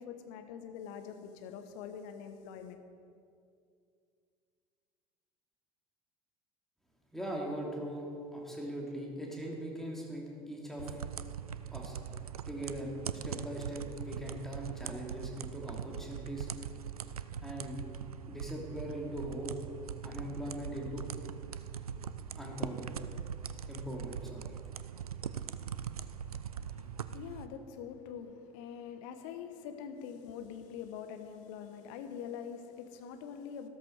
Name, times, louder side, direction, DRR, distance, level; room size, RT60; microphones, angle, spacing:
voice 1, 0.0-2.8 26.7-33.7, left 7 dB, 55° left, 7 dB, 1.2 m, -44 dB
voice 2, 7.1-11.0 11.7-12.0 12.5-16.5 17.4-17.8 18.3-19.5 20.0-21.1 22.4-23.0 23.7-24.4, right 1 dB, ahead, -2 dB, 3.0 m, -40 dB
sound 1, 10.8-27.5, right 8 dB, 80° right, 0.4 m, -41 dB
13.0 x 13.0 x 4.8 m, 2.3 s
figure-of-eight pair, 70°, 19 cm